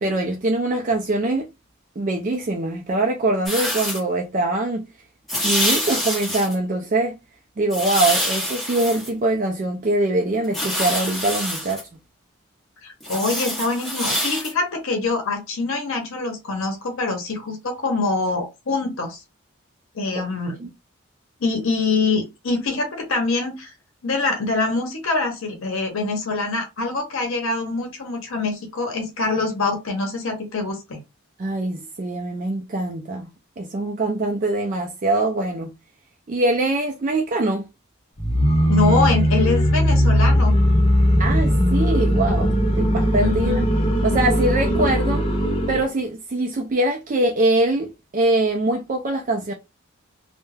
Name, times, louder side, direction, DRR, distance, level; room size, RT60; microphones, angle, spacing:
voice 1, 0.0-1.5 2.0-4.8 5.4-7.1 7.6-11.8 20.2-20.7 31.4-33.3 33.6-35.7 36.3-37.7 41.2-43.6 44.0-45.2 45.7-49.5, right 2 dB, 40° right, 0.3 m, -23 dB
sound 1, 3.5-4.0 5.3-6.5 7.7-9.1 10.4-11.8 13.0-14.5, equal, ahead, 0.9 m, -25 dB
voice 2, 12.8-19.2 19.9-20.5 21.4-23.7 24.0-31.0 38.7-40.5 43.2-43.7, left 3 dB, 75° left, 0.7 m, -24 dB
sound 2, 38.2-45.9, equal, 25° left, 0.6 m, -19 dB
2.3 x 2.1 x 3.1 m
head